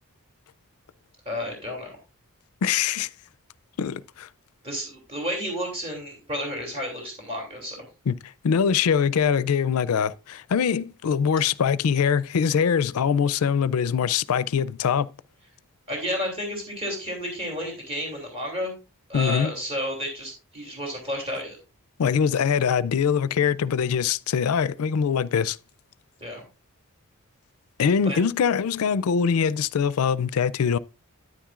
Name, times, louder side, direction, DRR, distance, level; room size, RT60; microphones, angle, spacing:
voice 1, 1.2-2.0 4.6-7.8 15.9-18.7 19.1-21.6 26.2-26.4 28.0-28.2, equal, 30° right, 2.8 m, -31 dB
voice 2, 2.6-3.1 3.8-4.3 8.1-8.2 8.4-15.1 19.1-19.5 22.0-25.6 27.8-30.8, left 7 dB, 80° left, 0.4 m, -23 dB
10.0 x 9.6 x 2.4 m
head